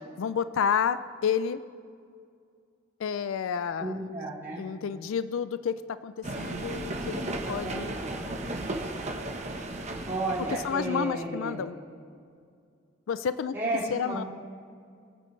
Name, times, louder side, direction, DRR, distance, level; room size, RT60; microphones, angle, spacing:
voice 1, 0.2-1.6 3.0-4.1 4.6-7.9 10.4-11.8 13.1-13.5 13.9-14.2, left 7 dB, 80° left, 14 dB, 0.4 m, -30 dB
voice 2, 3.8-4.6 7.4-8.2 10.0-11.6 13.5-14.3, right 2 dB, 15° right, -15 dB, 3.1 m, -33 dB
sound 1, 6.2-11.1, right 2 dB, 35° right, 1.0 m, -35 dB
22.0 x 8.8 x 3.2 m, 2.3 s
head